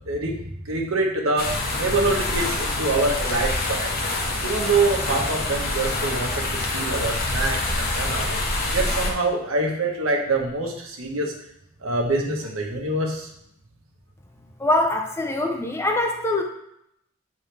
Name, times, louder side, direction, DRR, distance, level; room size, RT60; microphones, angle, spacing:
voice 1, 0.1-0.4 0.6-3.9 4.4-8.5 8.7-11.3 11.8-13.3, right 2 dB, 75° right, 0 dB, 1.2 m, -25 dB
sound 1, 1.4-9.1, left 2 dB, 45° left, 1.0 m, -26 dB
voice 2, 14.6-16.4, left 1 dB, 10° left, 3 dB, 0.6 m, -23 dB
7.7 x 3.9 x 3.4 m, 0.76 s
head